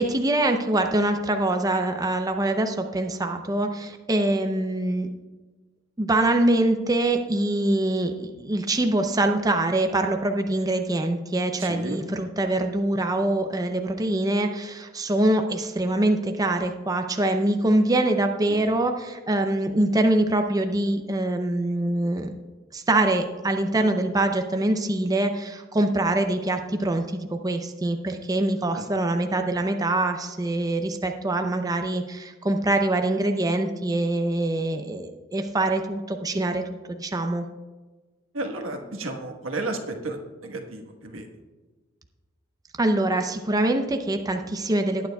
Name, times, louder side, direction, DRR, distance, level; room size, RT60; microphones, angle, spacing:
voice 1, 0.0-5.1 6.0-22.4 22.7-36.6 36.9-37.4 42.8-45.1, right 1 dB, 20° right, 5 dB, 0.5 m, -24 dB
voice 2, 11.6-12.0 18.5-18.7 28.7-28.8 38.3-41.3, right 2 dB, 85° right, 3 dB, 1.3 m, -33 dB
19.0 x 9.3 x 2.3 m, 1.3 s
head